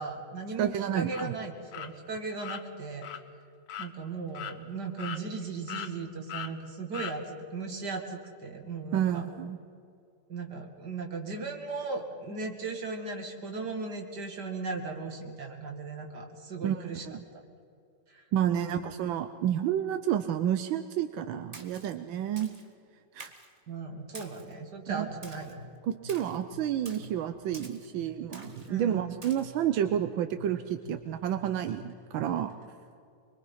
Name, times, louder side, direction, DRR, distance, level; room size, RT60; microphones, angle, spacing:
voice 1, 0.0-3.1 3.8-9.3 10.3-17.4 18.1-18.2 18.5-18.8 23.7-25.6 28.7-29.2, right 4 dB, 60° right, 3 dB, 2.9 m, -37 dB
voice 2, 0.6-1.3 8.9-9.6 16.6-17.2 18.3-22.5 23.1-23.3 24.9-25.1 25.8-32.6, right 10 dB, 85° right, 8 dB, 1.5 m, -30 dB
sound 1, 1.1-1.2 1.7-1.9 2.4-2.6 3.0-3.2 3.7-3.9 4.3-4.6 5.0-5.4 5.7-5.9 6.3-6.5 6.9-7.2, left 8 dB, 90° left, 1.8 m, -38 dB
Splash splatter, 21.5-21.9 22.4-22.7 23.2-23.5 24.1-24.5 25.2-25.5 26.1-26.4 26.8-27.1 27.5-27.9 28.3-28.7 29.2-29.5, right 2 dB, 20° right, 1.5 m, -48 dB
sound 2, 25.1-32.6, left 3 dB, 70° left, 8.1 m, -50 dB
25.0 x 22.5 x 5.6 m, 2.5 s
omnidirectional pair, 2.1 m